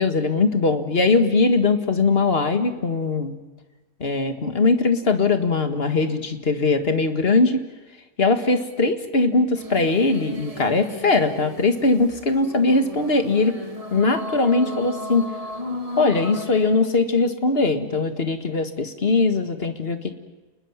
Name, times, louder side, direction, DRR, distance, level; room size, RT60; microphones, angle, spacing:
voice 1, 0.0-3.3 4.0-7.6 8.2-13.5 13.9-15.3 16.0-20.1, left 3 dB, 35° left, 7 dB, 1.9 m, -20 dB
sound 1, 9.5-16.9, left 1 dB, 20° right, 1.7 m, -35 dB
30.0 x 20.5 x 7.4 m, 1.2 s
omnidirectional pair, 1.8 m